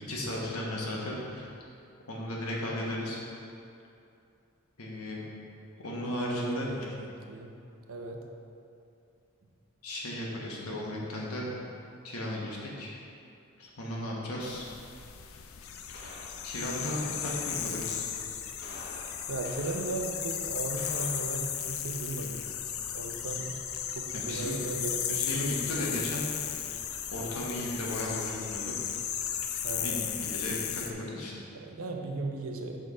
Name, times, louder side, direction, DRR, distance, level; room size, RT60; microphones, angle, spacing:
voice 1, 0.1-1.5 2.1-3.2 4.8-5.2 5.8-6.7 9.8-11.5 12.0-12.9 13.6-14.6 16.0-16.1 16.4-18.1 24.1-24.6 25.1-26.3 27.1-28.7 29.7-31.3, left 1 dB, 90° left, -3 dB, 1.3 m, -35 dB
voice 2, 6.0-6.9 7.3-7.5 7.9-8.2 19.3-22.4 22.9-23.5 23.9-25.2 29.6-30.1 31.5-32.8, right 3 dB, 75° right, 2 dB, 0.7 m, -36 dB
sound 1, 14.4-30.9, left 9 dB, 70° left, 0.4 m, -35 dB
sound 2, 14.9-15.0 15.9-17.7 18.6-20.1 20.8-21.2, left 1 dB, 50° left, 0.9 m, -47 dB
6.1 x 4.4 x 4.9 m, 2.6 s
head